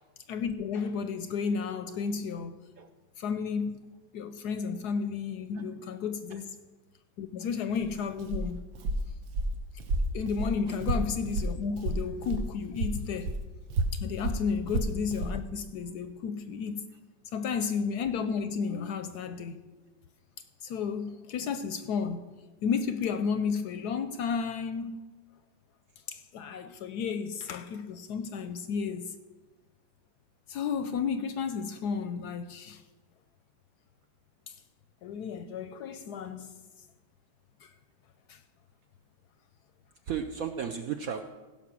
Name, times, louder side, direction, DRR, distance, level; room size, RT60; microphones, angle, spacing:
voice 1, 0.3-2.6 3.2-3.9 4.1-6.5 7.2-8.7 10.1-13.4 13.9-16.8 17.3-19.6 20.6-22.3 22.6-25.0 26.1-29.1 30.5-32.8 34.5-34.6 35.0-36.6 37.6-37.7 38.3-38.4, left 6 dB, 70° left, 1.0 m, -32 dB
Walk footsteps, 7.7-12.5 12.8-15.4, right 1 dB, 90° right, 1.7 m, -31 dB
voice 2, 40.0-41.2, right 7 dB, 70° right, 0.8 m, -35 dB
16.0 x 5.7 x 6.1 m
omnidirectional pair, 2.1 m